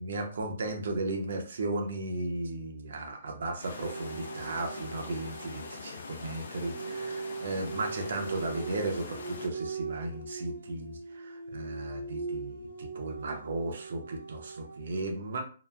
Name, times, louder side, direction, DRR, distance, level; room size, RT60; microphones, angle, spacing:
voice 1, 0.0-15.4, right 2 dB, 55° right, 4 dB, 0.6 m, -35 dB
sound 1, 3.6-9.5, left 3 dB, 75° left, 0.6 m, -43 dB
sound 2, 3.8-5.8 6.6-14.8, right 4 dB, 90° right, 1.1 m, -40 dB
2.8 x 2.2 x 2.4 m, 0.39 s
hypercardioid pair, 180°, 0 cm